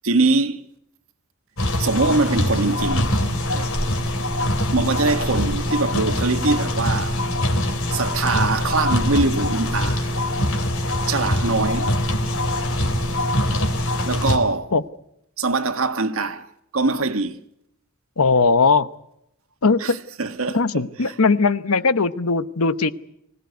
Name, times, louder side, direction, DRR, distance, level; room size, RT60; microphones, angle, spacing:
voice 1, 0.0-0.6 1.8-3.1 3.5-3.7 4.7-7.2 7.9-10.1 11.1-11.9 14.1-14.7 15.4-16.5 16.7-17.4 19.8-19.9 20.2-20.8, right 3 dB, 75° right, 1.7 m, -22 dB
sound 1, 1.6-14.4, left 1 dB, 70° left, 3.5 m, -23 dB
voice 2, 18.2-18.9 19.6-20.0 20.5-22.9, left 4 dB, 85° left, 1.0 m, -19 dB
25.0 x 17.0 x 9.4 m
head